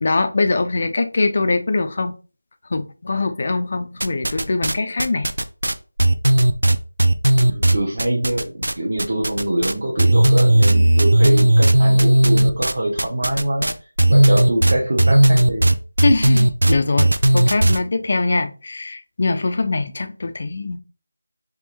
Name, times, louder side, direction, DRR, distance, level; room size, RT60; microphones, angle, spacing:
voice 1, 0.0-2.1 2.7-5.3 16.0-20.8, left 3 dB, 30° left, 0.3 m, -22 dB
sound 1, 4.0-4.7 5.0-8.7 9.0-9.7 10.0-17.8, right 1 dB, 85° right, 0.4 m, -15 dB
voice 2, 7.4-13.7 14.1-15.7, right 1 dB, 45° right, 0.8 m, -24 dB
3.5 x 2.9 x 3.0 m
figure-of-eight pair, 180°, 0 cm